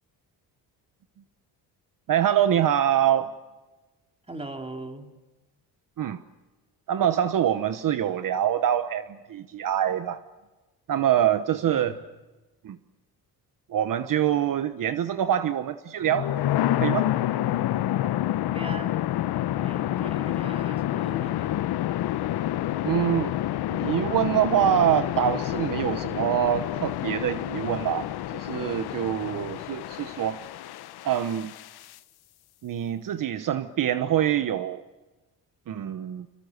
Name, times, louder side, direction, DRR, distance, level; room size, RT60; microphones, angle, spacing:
voice 1, 2.1-3.3 6.0-6.2 6.9-10.2 10.9-11.9 12.6-12.8 13.7-16.3 16.8-17.1 22.8-23.3 23.7-30.4 31.0-31.5 32.6-34.8 35.7-36.3, right 10 dB, 55° right, 1.1 m, -25 dB
voice 2, 4.3-5.1 11.6-12.0 18.5-19.0 19.5-21.6 29.0-29.6, right 1 dB, 15° right, 3.0 m, -40 dB
sound 1, 16.0-31.9, left 13 dB, 75° left, 1.0 m, -28 dB
28.0 x 25.0 x 6.6 m
cardioid pair, 110°, 39 cm